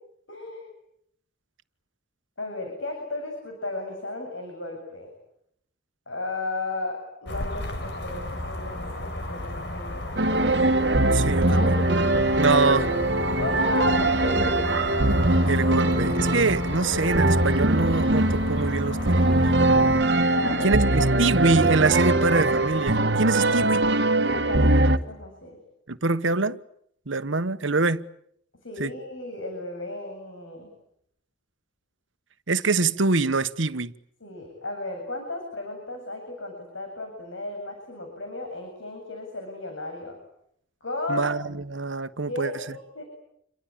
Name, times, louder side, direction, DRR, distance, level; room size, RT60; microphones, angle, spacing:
voice 1, 0.3-0.7 2.4-5.1 6.1-10.6 11.5-11.8 12.5-12.9 13.4-14.6 20.3-21.2 24.3-25.6 28.6-30.7 34.2-40.2 40.8-41.3 42.3-43.0, left 2 dB, 85° left, 8.0 m, -34 dB
sound 1, 7.3-20.0, left 1 dB, 60° left, 4.4 m, -34 dB
sound 2, 10.2-25.0, right 2 dB, 60° right, 1.7 m, -22 dB
voice 2, 11.1-11.7 12.4-12.8 15.5-19.4 20.6-23.9 25.9-26.6 27.1-28.0 28.8-28.9 32.5-33.9 41.1-42.5, right 3 dB, 80° right, 1.3 m, -24 dB
29.0 x 23.0 x 8.9 m
head